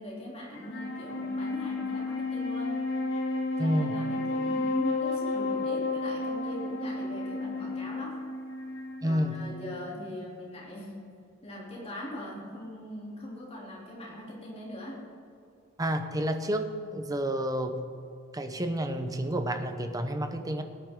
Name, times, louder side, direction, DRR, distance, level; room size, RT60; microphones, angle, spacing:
voice 1, 0.0-2.8 3.6-8.1 9.0-11.0 11.4-15.0, left 1 dB, 30° left, -4 dB, 3.1 m, -40 dB
Wind instrument woodwind instrument, 0.5-10.0, left 3 dB, 80° left, 2.0 m, -32 dB
voice 2, 3.6-4.0 9.0-9.4 15.8-17.8 18.3-20.6, equal, 20° right, 7 dB, 0.8 m, -30 dB
18.5 x 10.0 x 3.8 m, 2.6 s
head